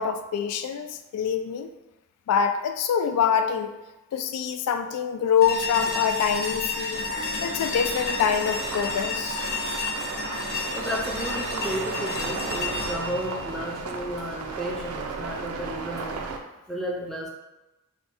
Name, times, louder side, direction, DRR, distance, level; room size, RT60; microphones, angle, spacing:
voice 1, 0.0-1.7 2.3-3.7 4.1-7.0 7.4-9.4, left 7 dB, 85° left, 11 dB, 0.3 m, -25 dB
sound 1, 5.4-14.4, left 3 dB, 60° left, 0.8 m, -31 dB
sound 2, 6.9-16.4, right 4 dB, 85° right, 0.4 m, -35 dB
sound 3, 7.2-9.6, left 5 dB, 35° left, 0.9 m, -49 dB
voice 2, 10.7-16.3 16.7-17.3, equal, ahead, -3 dB, 0.4 m, -33 dB
3.4 x 2.2 x 4.2 m, 1.0 s
head